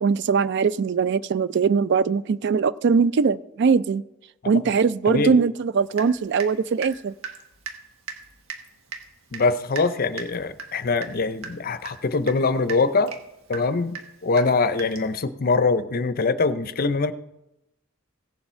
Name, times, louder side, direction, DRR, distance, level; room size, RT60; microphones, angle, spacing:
voice 1, 0.0-4.0 4.5-7.1, right 5 dB, 55° right, 17 dB, 0.4 m, -21 dB
voice 2, 5.1-5.4 9.3-13.1 13.5-14.0 14.2-17.1, left 3 dB, 45° left, 13 dB, 0.6 m, -23 dB
Water tap faucet / Drip, 5.9-6.6 6.8-15.2, right 5 dB, 75° right, 1.4 m, -38 dB
16.5 x 7.1 x 4.3 m, 0.88 s
head